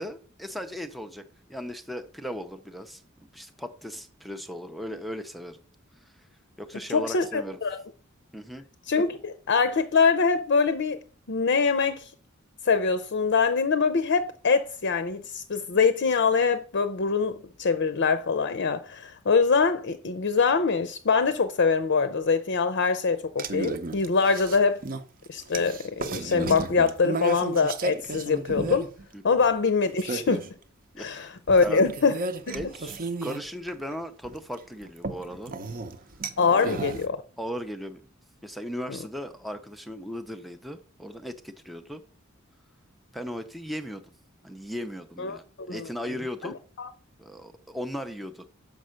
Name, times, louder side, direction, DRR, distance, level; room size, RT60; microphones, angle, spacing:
voice 1, 0.0-5.6 6.6-7.6 8.3-8.6 29.1-29.4 30.9-31.3 31.6-31.8 32.5-35.5 36.5-36.9 37.4-38.1 38.4-42.0 43.1-44.0 44.4-46.6 47.2-48.5, equal, ahead, 0.5 m, -37 dB
voice 2, 6.9-7.8 8.8-11.0 11.3-12.1 12.6-24.8 25.3-28.9 29.2-30.5 31.0-32.2 32.5-32.6 36.4-37.2 38.9-39.0 45.2-45.9 46.4-46.9, left 5 dB, 55° left, 0.6 m, -24 dB
sound 1, 23.4-29.1 29.4-29.5 30.0-30.5 31.5-33.9 34.2-37.0, right 3 dB, 45° right, 0.7 m, -33 dB
6.4 x 5.5 x 6.3 m
head